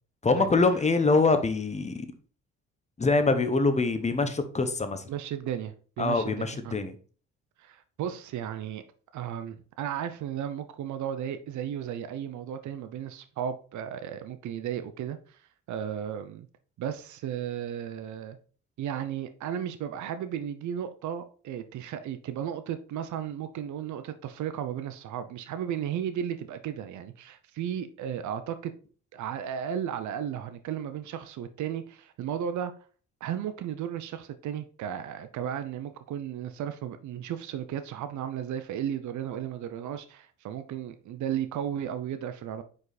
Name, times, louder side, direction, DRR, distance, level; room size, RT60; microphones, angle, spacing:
voice 1, 0.2-2.1 3.0-5.0 6.0-6.9, left 3 dB, 25° left, 0.9 m, -24 dB
voice 2, 5.1-6.8 7.6-8.8 9.1-15.4 15.7-16.5 16.8-18.4 18.8-28.7 29.1-32.7 33.2-42.6, right 9 dB, 70° right, 0.7 m, -34 dB
5.2 x 4.8 x 4.1 m
cardioid pair, 90°, 30 cm